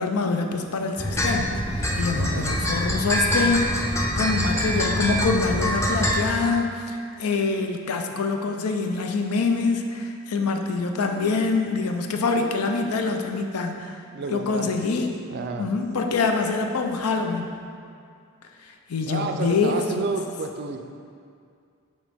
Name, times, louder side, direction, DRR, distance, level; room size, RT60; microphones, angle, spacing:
voice 1, 0.0-14.0 14.3-15.1 15.6-17.5 18.6-20.1, left 4 dB, 85° left, 4 dB, 0.5 m, -25 dB
sound 1, 1.0-6.2, equal, 15° left, 0.5 m, -24 dB
voice 2, 2.1-2.5 14.1-14.8 15.3-15.7 19.1-20.8, right 4 dB, 50° right, 6 dB, 0.4 m, -30 dB
6.3 x 4.2 x 3.5 m, 2.4 s
head